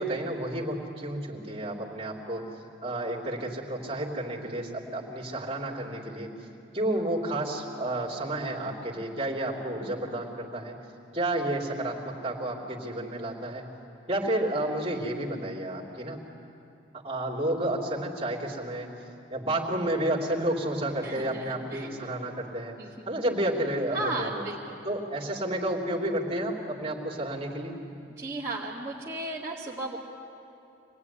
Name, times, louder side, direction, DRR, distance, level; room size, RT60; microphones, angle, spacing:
voice 1, 0.0-2.5 2.8-6.3 6.7-10.8 11.1-13.7 14.1-16.2 17.0-18.9 19.3-22.8 23.0-24.4 24.8-27.8, right 1 dB, 30° right, -3 dB, 3.3 m, -31 dB
voice 2, 21.0-21.9 22.8-23.0 23.9-24.9 28.2-30.0, right 2 dB, 15° right, -8 dB, 2.2 m, -35 dB
26.0 x 19.5 x 9.6 m, 2.7 s
head